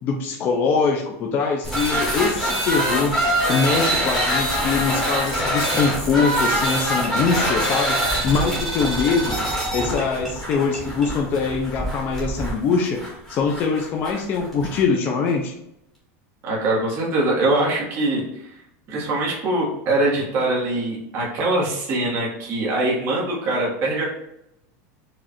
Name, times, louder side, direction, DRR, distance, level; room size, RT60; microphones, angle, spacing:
voice 1, 0.0-3.2 3.5-8.0 8.2-9.4 9.7-13.0 13.3-15.5, left 5 dB, 25° left, 1 dB, 0.4 m, -23 dB
sound 1, 1.6-14.8, right 1 dB, 5° left, 1.2 m, -24 dB
voice 2, 16.4-18.5 18.9-24.1, right 2 dB, 30° right, -4 dB, 1.2 m, -23 dB
4.8 x 2.4 x 4.2 m, 0.79 s
supercardioid pair, 175°, 8 cm